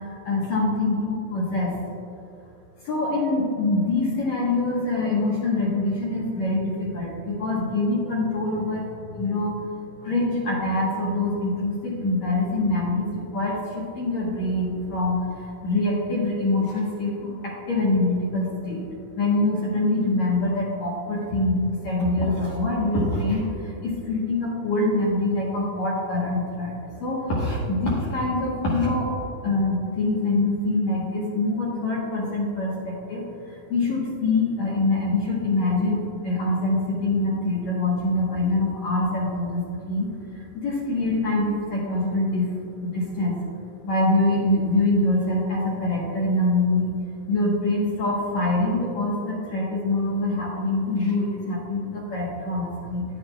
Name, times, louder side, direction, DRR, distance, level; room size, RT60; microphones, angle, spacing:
voice 1, 0.0-1.8 2.8-9.7 10.0-18.9 19.2-29.1 29.4-42.5 42.8-43.4 43.8-46.9 47.3-53.0, left 2 dB, 65° left, -6 dB, 1.9 m, -24 dB
10.0 x 9.6 x 2.3 m, 2.6 s
omnidirectional pair, 4.7 m